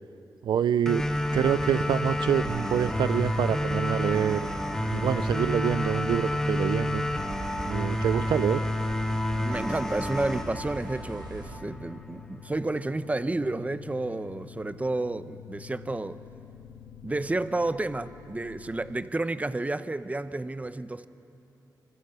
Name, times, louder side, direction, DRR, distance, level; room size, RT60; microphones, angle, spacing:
voice 1, 0.4-1.0 1.3-4.5 4.9-7.0 7.7-8.6, right 9 dB, 90° right, 0.5 m, -26 dB
sound 1, 0.8-19.1, left 9 dB, 90° left, 2.0 m, -48 dB
sound 2, 0.9-11.8, left 1 dB, 5° left, 1.6 m, -29 dB
sound 3, 1.0-11.6, right 3 dB, 65° right, 2.0 m, -41 dB
voice 2, 9.4-16.2 17.0-21.1, right 2 dB, 20° right, 0.8 m, -31 dB
26.5 x 25.5 x 6.8 m
cardioid pair, 80°, 8 cm